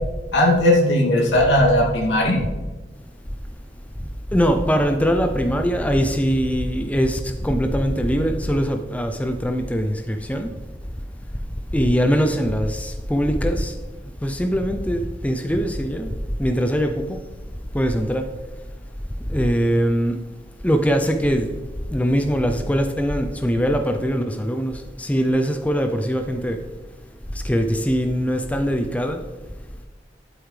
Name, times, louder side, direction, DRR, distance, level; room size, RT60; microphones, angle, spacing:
voice 1, 0.3-2.4, left 1 dB, 75° left, 2.5 m, -17 dB
voice 2, 4.3-10.5 11.7-13.7 14.2-16.1 16.4-17.2 17.7-18.3 19.3-20.2 20.6-21.5 21.9-26.6 27.4-29.2, equal, 10° left, 0.5 m, -22 dB
12.0 x 8.0 x 3.3 m
head